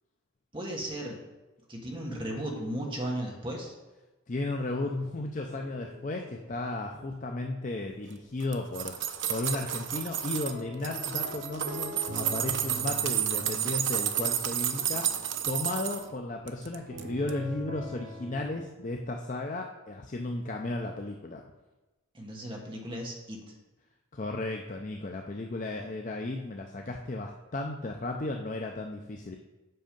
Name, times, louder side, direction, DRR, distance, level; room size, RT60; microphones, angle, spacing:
voice 1, 0.5-1.2 1.7-3.7 22.1-23.4, right 1 dB, 25° right, -1 dB, 1.3 m, -35 dB
voice 2, 4.3-21.4 24.1-29.4, left 2 dB, 35° left, 2 dB, 0.5 m, -35 dB
sound 1, 4.7-8.8 9.1-18.6, equal, 90° right, 1.2 m, -45 dB
sound 2, 8.4-10.5 10.8-16.0 16.5-17.0 17.3-17.4, right 10 dB, 60° right, 0.6 m, -31 dB
7.8 x 6.1 x 5.2 m, 1.1 s
head